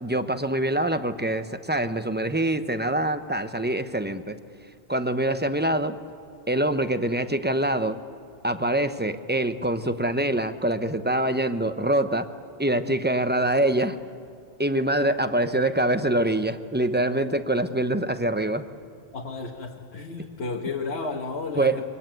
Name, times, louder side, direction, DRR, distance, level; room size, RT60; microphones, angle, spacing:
voice 1, 0.0-4.4 4.9-6.0 6.5-8.0 8.4-12.3 12.6-14.0 14.6-18.7 21.6-21.8, right 1 dB, 10° right, 10 dB, 0.8 m, -24 dB
voice 2, 19.1-21.8, left 3 dB, 75° left, 1 dB, 1.7 m, -32 dB
25.0 x 23.0 x 9.2 m, 2.2 s
omnidirectional pair, 1.1 m